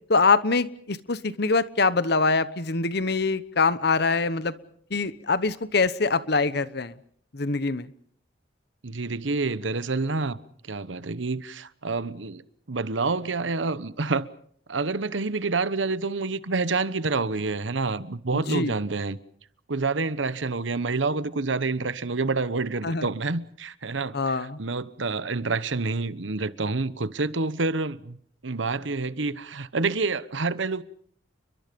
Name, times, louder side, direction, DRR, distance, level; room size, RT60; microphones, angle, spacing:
voice 1, 0.1-4.5 4.9-7.0 7.3-7.9 18.3-18.7 22.8-23.1 24.1-24.6, left 4 dB, 60° left, 1.1 m, -24 dB
voice 2, 8.8-10.4 10.7-12.4 12.7-14.3 14.7-19.2 19.7-28.2 28.4-30.8, right 3 dB, 85° right, 1.0 m, -28 dB
30.0 x 22.5 x 5.3 m
head